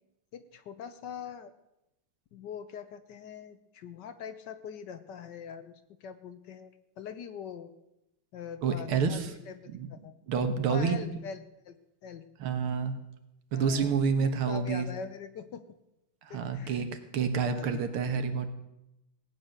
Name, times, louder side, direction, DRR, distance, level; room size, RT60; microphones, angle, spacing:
voice 1, 0.3-1.5 2.3-7.7 8.3-10.1 10.7-11.4 11.6-11.8 12.0-12.2 13.5-14.0 14.5-15.6 16.3-16.8 17.5-17.8, left 7 dB, 65° left, 11 dB, 1.2 m, -42 dB
voice 2, 8.6-9.4 9.7-9.9 10.3-11.1 12.4-12.9 13.5-14.9 16.2-16.9 17.1-18.5, right 6 dB, 85° right, 8 dB, 2.2 m, -28 dB
17.0 x 9.4 x 6.5 m, 0.89 s
omnidirectional pair, 2.3 m